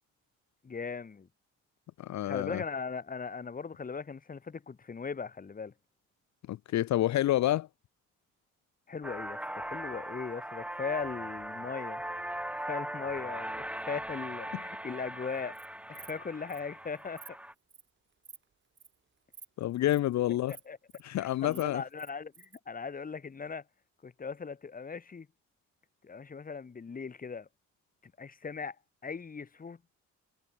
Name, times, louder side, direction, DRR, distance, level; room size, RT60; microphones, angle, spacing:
voice 1, 0.6-1.3 2.2-5.7 8.9-12.0 12.5-15.5 15.9-17.2 20.5-20.8 21.2-23.6 24.0-25.3 26.0-27.5 28.2-28.8 29.0-29.8, left 5 dB, 30° left, 1.5 m, -39 dB
voice 2, 2.0-2.6 6.5-7.7 19.6-20.5 21.0-21.8, left 14 dB, 65° left, 0.7 m, -28 dB
sound 1, 9.0-17.5, right 1 dB, 5° right, 4.4 m, -39 dB
Insect, 15.3-15.7 15.9-16.2 16.5-16.6 16.9-17.3 17.7-17.9 18.2-18.4 18.8-18.9 19.3-19.5 19.7-20.0 20.5-21.0 21.3-22.6, right 6 dB, 40° right, 3.1 m, -51 dB
cardioid pair, 90°, 30 cm